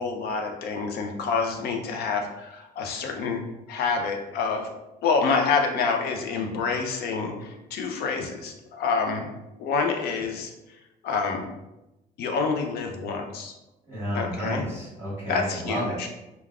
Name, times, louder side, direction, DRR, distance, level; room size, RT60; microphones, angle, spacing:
voice 1, 0.0-3.4 3.7-4.7 5.0-9.3 9.6-10.5 11.0-11.5 12.2-13.5 14.1-14.6 15.3-16.1, left 5 dB, 70° left, 4 dB, 0.5 m, -27 dB
voice 2, 13.9-16.1, equal, 15° right, -11 dB, 1.4 m, -31 dB
3.3 x 2.2 x 2.4 m, 0.95 s
cardioid pair, 110°, 17 cm